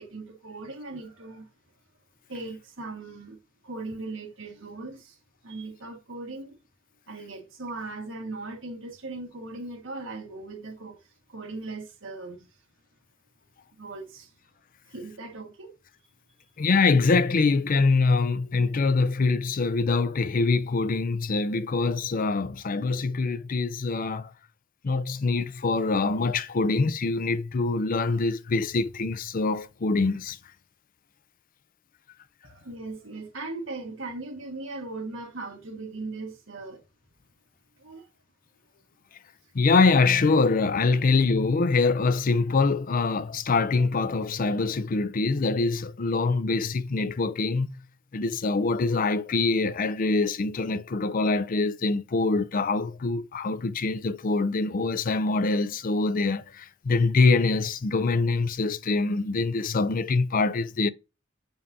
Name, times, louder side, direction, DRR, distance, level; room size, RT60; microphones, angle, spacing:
voice 1, 0.0-1.5 2.3-3.4 3.6-5.2 5.4-6.6 7.1-11.0 11.3-12.5 13.8-14.3 14.9-15.7 32.4-36.8 37.8-38.1, right 3 dB, 70° right, 1.6 m, -38 dB
voice 2, 16.6-24.3 24.8-30.4 39.5-47.7 48.1-60.9, left 3 dB, 45° left, 0.5 m, -24 dB
7.1 x 5.2 x 2.7 m
head